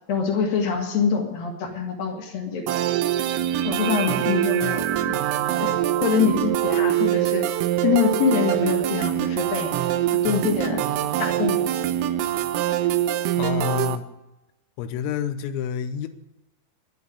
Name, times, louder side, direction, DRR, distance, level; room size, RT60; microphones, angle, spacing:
voice 1, 0.1-2.7 3.6-5.1 5.6-5.7 6.0-7.4 7.8-9.7 10.0-10.9 11.2-11.6, left 6 dB, 55° left, 2 dB, 2.9 m, -24 dB
sound 1, 2.7-14.0, right 12 dB, 90° right, 3.4 m, -24 dB
voice 2, 13.3-14.1 14.8-16.1, left 8 dB, 85° left, 8 dB, 3.6 m, -28 dB
11.0 x 9.4 x 9.8 m, 0.97 s
omnidirectional pair, 5.9 m